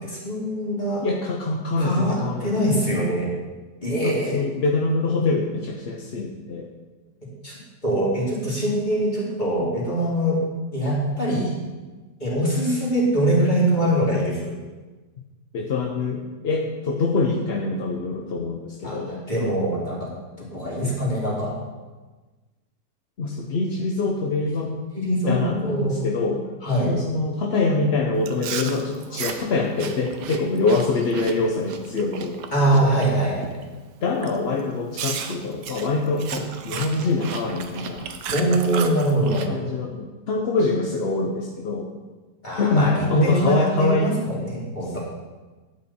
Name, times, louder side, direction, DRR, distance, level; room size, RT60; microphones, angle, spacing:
voice 1, 0.0-1.0 1.8-3.3 3.8-4.4 7.4-7.5 7.8-10.4 10.7-11.5 12.2-14.5 18.8-20.0 20.4-21.6 24.9-26.1 26.6-26.9 32.5-33.5 38.3-39.5 42.4-45.0, right 1 dB, 25° left, -6 dB, 3.3 m, -23 dB
voice 2, 1.0-2.8 4.0-6.7 15.5-19.2 23.2-24.8 25.3-26.4 26.8-33.0 34.0-38.1 39.5-41.9 42.6-44.1, left 3 dB, 50° left, 1 dB, 0.9 m, -24 dB
Chewing mastication, 28.2-33.1 33.4-33.8 34.2-34.4 35.0-39.5, right 7 dB, 75° right, 1.4 m, -34 dB
11.5 x 8.7 x 4.3 m, 1.3 s
omnidirectional pair, 1.8 m